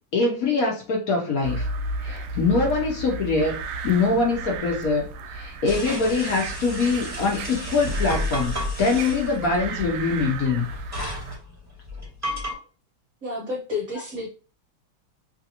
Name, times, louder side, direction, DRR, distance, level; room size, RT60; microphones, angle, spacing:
voice 1, 0.1-1.7 2.0-3.6 3.8-5.1 5.3-10.7, left 3 dB, 65° left, -1 dB, 0.9 m, -23 dB
sound 1, 1.4-11.4, right 2 dB, 80° right, 1.4 m, -33 dB
sound 2, 5.6-12.5, left 1 dB, 10° right, 1.4 m, -33 dB
voice 2, 13.2-14.3, left 3 dB, 50° right, -4 dB, 1.1 m, -30 dB
3.3 x 2.6 x 2.7 m, 0.35 s
omnidirectional pair, 2.4 m